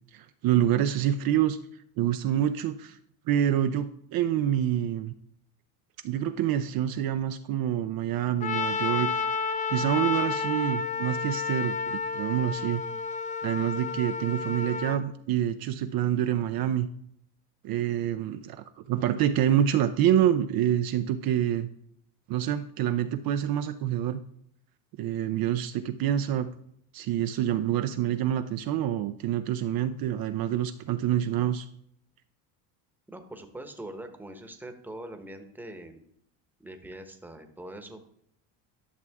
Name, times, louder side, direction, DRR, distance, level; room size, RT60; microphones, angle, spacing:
voice 1, 0.1-1.6 2.0-3.0 3.3-5.1 6.0-9.1 9.7-12.8 13.4-16.9 17.6-21.7 22.3-24.2 25.0-26.5 26.9-31.7, right 11 dB, 55° right, 8 dB, 0.6 m, -27 dB
Trumpet, 8.4-15.0, left 4 dB, 20° left, 0.3 m, -31 dB
voice 2, 33.1-36.0 36.6-38.0, right 1 dB, 5° right, 6 dB, 1.0 m, -42 dB
11.0 x 6.0 x 3.5 m, 0.70 s
cardioid pair, 120°, 43 cm